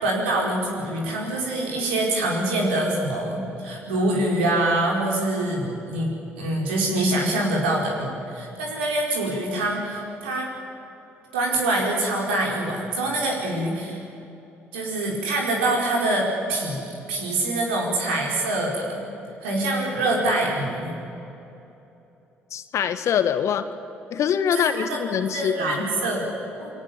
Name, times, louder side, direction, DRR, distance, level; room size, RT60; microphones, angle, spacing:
voice 1, 0.0-6.1 6.4-10.5 11.3-14.0 14.7-16.8 17.1-19.0 19.4-20.9 24.5-25.0 25.3-26.7, right 1 dB, 75° right, -1 dB, 4.8 m, -25 dB
voice 2, 22.5-23.7 24.1-25.8, left 8 dB, 55° left, 11 dB, 1.5 m, -24 dB
28.5 x 22.0 x 7.4 m, 2.9 s
figure-of-eight pair, 45°, 6 cm